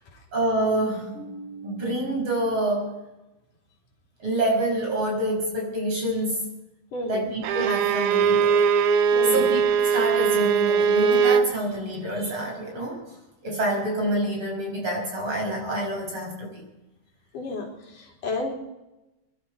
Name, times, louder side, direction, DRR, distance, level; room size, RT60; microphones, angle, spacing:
voice 1, 0.3-2.9 4.2-6.5 7.1-8.6 9.3-13.0 13.4-16.6, right 1 dB, 40° right, 0 dB, 7.0 m, -27 dB
voice 2, 6.9-7.3 9.1-9.5 17.3-17.7 17.9-18.5, left 2 dB, 80° left, -2 dB, 5.1 m, -31 dB
Bowed string instrument, 7.4-11.5, right 6 dB, 80° right, 1.3 m, -20 dB
26.0 x 12.0 x 4.6 m, 0.99 s
omnidirectional pair, 3.6 m